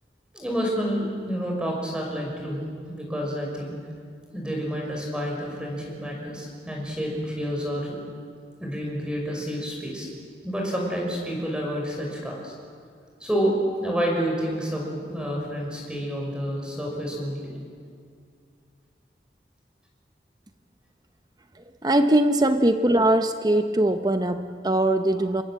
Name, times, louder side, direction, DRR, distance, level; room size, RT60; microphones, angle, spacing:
voice 1, 0.3-3.7 4.3-8.0 8.6-10.1 10.4-12.5 13.2-13.5 13.8-17.5, equal, 5° right, -1 dB, 5.8 m, -29 dB
voice 2, 21.8-25.4, right 1 dB, 20° right, 8 dB, 0.8 m, -21 dB
27.5 x 23.0 x 7.7 m, 2.2 s
head